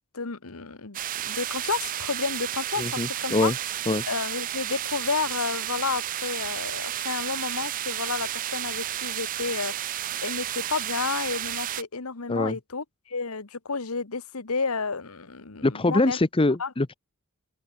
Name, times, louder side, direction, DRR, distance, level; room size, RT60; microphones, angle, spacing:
voice 1, 0.1-3.5 4.1-16.2 16.6-16.7, left 4 dB, 75° left, 1.4 m, -31 dB
sound 1, 0.9-11.8, right 12 dB, 40° right, 0.4 m, -32 dB
voice 2, 2.8-3.6 3.9-4.0 12.3-12.6 15.6-16.9, left 2 dB, 25° left, 0.7 m, -24 dB
head